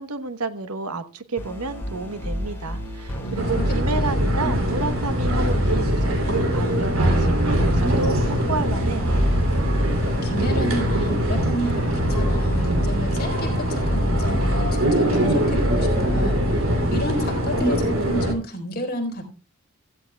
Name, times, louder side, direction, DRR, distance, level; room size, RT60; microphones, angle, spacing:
voice 1, 0.0-9.2, right 3 dB, 85° right, 1.1 m, -30 dB
sound 1, 1.4-16.8, equal, 10° left, 5.2 m, -27 dB
voice 2, 3.2-4.3 10.1-19.2, equal, 45° left, 4.0 m, -31 dB
sound 2, 3.4-18.3, equal, 65° right, 3.1 m, -23 dB
16.0 x 14.0 x 2.3 m
head